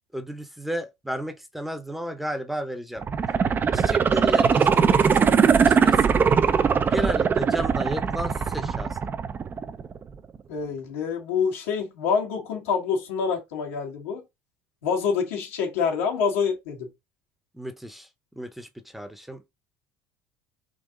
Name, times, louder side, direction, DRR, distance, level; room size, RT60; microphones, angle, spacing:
voice 1, 0.1-3.1 3.7-5.3 5.6-6.6 6.9-9.0 17.5-18.1 18.4-19.5, equal, 5° right, 0.8 m, -33 dB
sound 1, 3.0-10.0 10.4-10.5, right 6 dB, 30° right, 0.4 m, -21 dB
voice 2, 10.5-14.2 14.8-16.9, left 6 dB, 90° left, 1.6 m, -26 dB
3.8 x 2.8 x 3.8 m
supercardioid pair, 85°, 7 cm